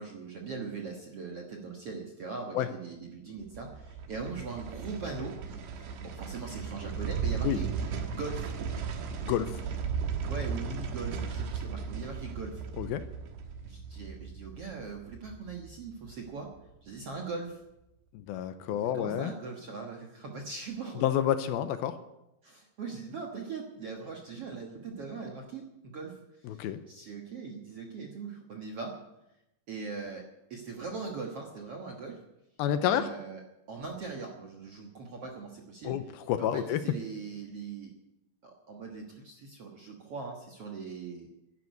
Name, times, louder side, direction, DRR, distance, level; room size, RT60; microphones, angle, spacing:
voice 1, 0.0-5.4 5.8-7.7 8.1-8.5 10.3-12.6 13.6-16.5 16.8-17.6 18.7-21.1 22.4-29.0 29.7-30.2 30.5-32.2 32.8-33.4 33.7-38.0 38.4-41.3, right 4 dB, 60° right, 1 dB, 1.6 m, -40 dB
sound 1, 3.4-16.6 16.9-17.0, right 6 dB, 85° right, 3.6 m, -36 dB
voice 2, 9.2-9.6 12.8-13.0 18.3-19.3 21.0-21.9 26.5-26.8 32.6-33.1 35.8-36.8, left 10 dB, 80° left, 11 dB, 2.4 m, -29 dB
11.0 x 11.0 x 9.4 m, 0.90 s
omnidirectional pair, 4.7 m